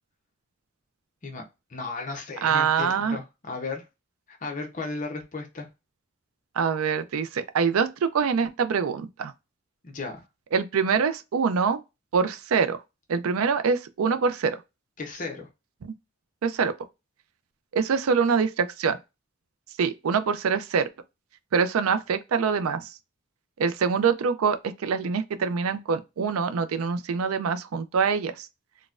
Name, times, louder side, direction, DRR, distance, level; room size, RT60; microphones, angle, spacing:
voice 1, 1.7-3.8 4.3-5.7 9.8-10.2 15.0-15.5, left 3 dB, 35° left, 0.7 m, -35 dB
voice 2, 2.4-3.2 6.6-9.3 10.5-11.8 12.1-12.8 13.1-14.6 15.8-15.9 16.4-16.7 17.7-19.0 19.8-20.9 21.5-22.9 23.6-28.5, right 6 dB, 85° right, 0.4 m, -24 dB
4.0 x 2.2 x 2.4 m
head